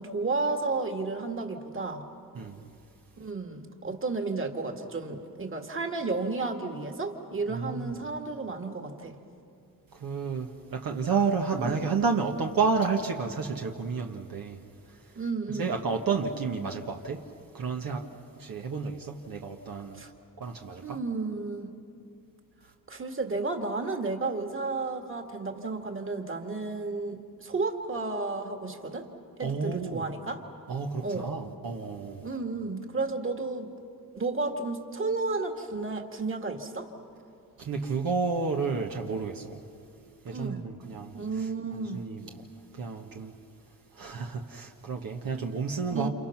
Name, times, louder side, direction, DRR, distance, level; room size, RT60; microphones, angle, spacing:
voice 1, 0.0-2.0 3.2-9.2 11.5-11.8 15.2-15.7 19.9-20.1 20.8-21.7 22.9-29.1 29.4-30.4 31.0-31.3 32.2-33.7 34.1-36.9 40.3-40.6 41.1-42.0 45.9-46.1, right 3 dB, 35° right, 2.2 m, -32 dB
voice 2, 7.5-7.9 9.9-14.6 14.9-15.1 15.5-17.3 17.5-20.0 20.4-21.0 29.4-30.1 30.7-32.2 37.6-39.6 40.2-42.4 42.7-43.4 43.9-46.1, right 5 dB, 70° right, 1.4 m, -31 dB
30.0 x 28.0 x 6.0 m
cardioid pair, 100°, 36 cm